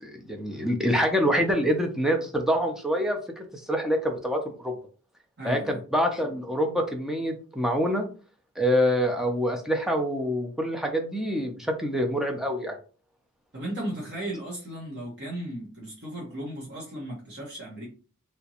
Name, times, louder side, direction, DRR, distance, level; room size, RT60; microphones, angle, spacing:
voice 1, 0.0-4.7 5.4-8.0 8.6-12.8, equal, ahead, 2 dB, 0.6 m, -26 dB
voice 2, 5.4-5.8 13.5-17.9, right 1 dB, 50° right, -5 dB, 1.2 m, -36 dB
3.4 x 2.9 x 2.8 m, 0.39 s
head